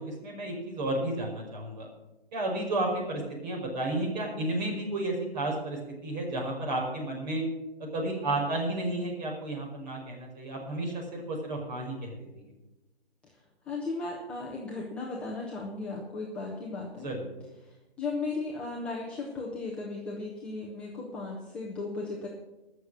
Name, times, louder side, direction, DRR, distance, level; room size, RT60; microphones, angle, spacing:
voice 1, 0.0-1.9 2.3-7.4 7.8-12.1 17.0-17.3, right 1 dB, 45° right, 0 dB, 5.2 m, -32 dB
voice 2, 13.7-17.1 17.6-22.3, left 3 dB, 5° left, -4 dB, 0.4 m, -36 dB
19.5 x 6.7 x 6.2 m, 1.1 s
figure-of-eight pair, 140°, 31 cm